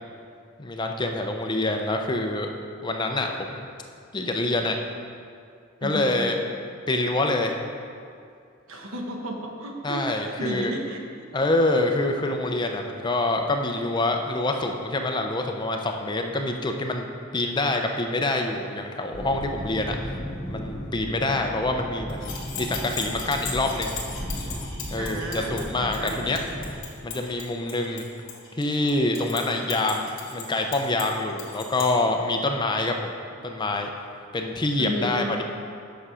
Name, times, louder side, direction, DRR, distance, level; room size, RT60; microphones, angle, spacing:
voice 1, 0.6-2.5 2.8-3.7 4.1-4.8 5.8-6.4 6.9-7.6 9.8-10.7 11.3-20.0 20.5-24.0 24.9-26.4 27.0-28.1 28.5-33.1 33.4-33.9 34.3-35.4, left 2 dB, 20° left, 3 dB, 0.5 m, -26 dB
voice 2, 5.8-6.3 8.7-11.3 24.9-26.6 34.8-35.3, equal, 70° right, 1 dB, 1.1 m, -33 dB
sound 1, 19.1-26.8, equal, 45° left, 1.5 m, -35 dB
sound 2, 22.1-31.9, left 5 dB, 65° left, 1.7 m, -38 dB
8.1 x 6.1 x 4.9 m, 2.3 s
head